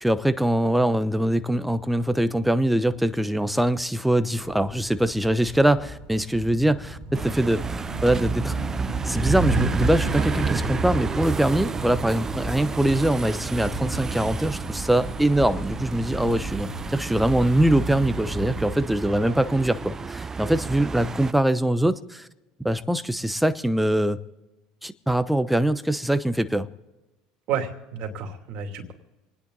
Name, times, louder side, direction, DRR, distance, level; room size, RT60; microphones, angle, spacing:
voice 1, 0.0-7.6 8.0-8.6 9.0-22.3 22.6-24.2 24.8-26.7, right 1 dB, 5° right, 0.9 m, -23 dB
sound 1, 4.4-18.9, right 1 dB, 45° right, 2.6 m, -33 dB
sound 2, 7.1-21.3, right 5 dB, 25° right, 0.4 m, -31 dB
voice 2, 27.5-28.9, right 7 dB, 60° right, 2.8 m, -31 dB
27.5 x 10.0 x 4.0 m
hypercardioid pair, 85°, 2 cm